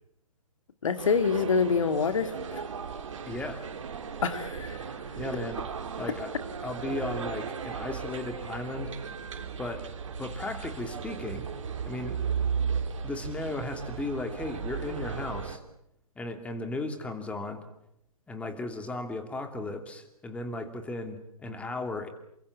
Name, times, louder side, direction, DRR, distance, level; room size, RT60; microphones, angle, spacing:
voice 1, 0.8-2.6 4.2-4.8, left 5 dB, 60° left, 9 dB, 2.8 m, -26 dB
sound 1, 1.0-15.6, right 6 dB, 55° right, 3.5 m, -36 dB
voice 2, 3.3-3.6 5.2-5.6 5.9-6.4 6.6-8.9 9.6-9.9 10.2-11.5 11.9-12.2 13.0-15.6 16.2-17.6 18.3-22.1, left 2 dB, 5° left, 7 dB, 2.8 m, -35 dB
28.5 x 24.5 x 7.3 m, 0.75 s
figure-of-eight pair, 130°, 19 cm